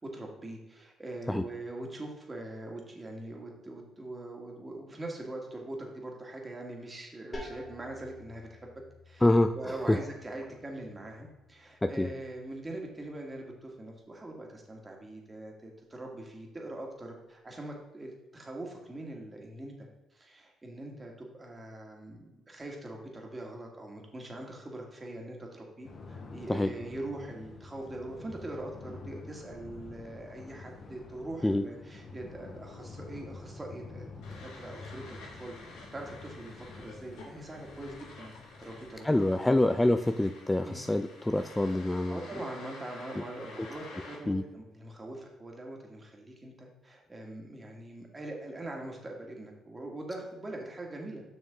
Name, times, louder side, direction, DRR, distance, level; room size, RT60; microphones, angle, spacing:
voice 1, 0.0-8.7 9.1-9.3 9.5-19.9 20.1-35.0 35.4-38.3 38.6-39.4 40.6-40.8 42.1-51.2, right 1 dB, 25° right, 0 dB, 2.1 m, -42 dB
sound 1, 7.3-12.9, left 1 dB, 30° left, 2.3 m, -50 dB
voice 2, 9.2-10.0 11.8-12.1 26.5-26.7 31.4-31.6 39.0-42.2 43.2-43.3 44.3-44.4, left 1 dB, 10° left, 9 dB, 0.3 m, -26 dB
sound 2, 25.8-39.0, left 3 dB, 50° left, 1.3 m, -48 dB
sound 3, 34.2-44.2, left 3 dB, 85° left, 1.9 m, -50 dB
6.8 x 6.4 x 3.7 m, 1.0 s
supercardioid pair, 70°, 0 cm